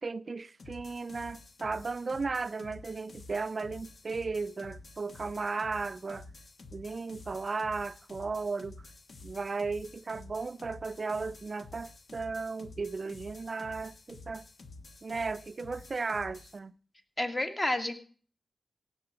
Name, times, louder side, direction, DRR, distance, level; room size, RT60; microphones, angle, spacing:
voice 1, 0.0-6.3 6.7-8.8 9.2-14.4 15.0-16.7, right 4 dB, 50° right, 0.5 m, -35 dB
sound 1, 0.6-16.6, left 3 dB, 65° left, 1.3 m, -50 dB
voice 2, 17.2-17.9, left 1 dB, 25° left, 1.9 m, -30 dB
17.0 x 7.6 x 5.0 m
cardioid pair, 70°, 0 cm